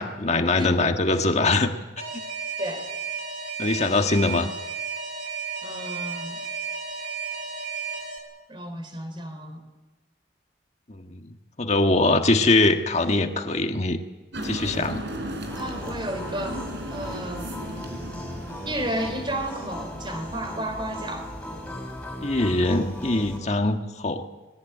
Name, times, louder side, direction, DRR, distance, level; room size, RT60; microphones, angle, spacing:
voice 1, 0.0-1.7 3.6-4.5 10.9-14.0 14.4-15.0 22.2-24.2, left 2 dB, 40° left, 5 dB, 1.6 m, -22 dB
Alarm, 2.0-8.2, right 5 dB, 60° right, 5.3 m, -33 dB
voice 2, 5.6-6.4 8.5-9.6 15.5-16.6 16.9-17.5 18.7-21.3, right 1 dB, 30° right, 6 dB, 4.0 m, -32 dB
sound 1, 14.3-20.3, right 1 dB, 75° right, 4.4 m, -36 dB
sound 2, 15.5-23.4, equal, 5° left, 5.7 m, -37 dB
21.0 x 20.0 x 9.2 m, 1.2 s
head